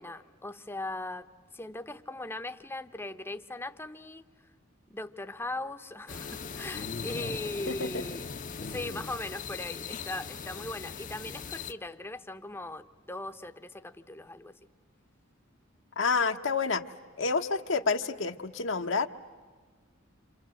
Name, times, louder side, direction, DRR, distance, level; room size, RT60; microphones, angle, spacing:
voice 1, 0.0-4.3 4.9-8.3 8.6-14.6, left 2 dB, 10° left, 9 dB, 0.8 m, -39 dB
sound 1, 6.1-11.7, left 5 dB, 40° left, 0.8 m, -39 dB
voice 2, 7.7-8.0 16.0-16.8 17.2-19.1, left 4 dB, 70° left, 6 dB, 1.1 m, -28 dB
28.0 x 27.5 x 7.6 m, 1.5 s
head